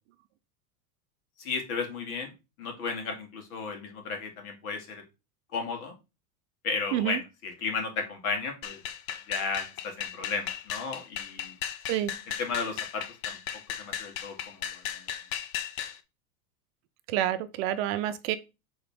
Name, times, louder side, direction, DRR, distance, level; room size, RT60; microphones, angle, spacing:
voice 1, 1.4-2.3 2.6-5.0 5.5-5.9 6.6-8.8 9.3-11.6 12.4-13.4 13.8-15.1, left 4 dB, 75° left, 2.4 m, -34 dB
sound 1, 8.6-16.0, left 10 dB, 45° left, 0.7 m, -36 dB
voice 2, 17.1-18.4, right 12 dB, 45° right, 0.6 m, -28 dB
6.9 x 3.9 x 3.6 m
supercardioid pair, 145°, 44 cm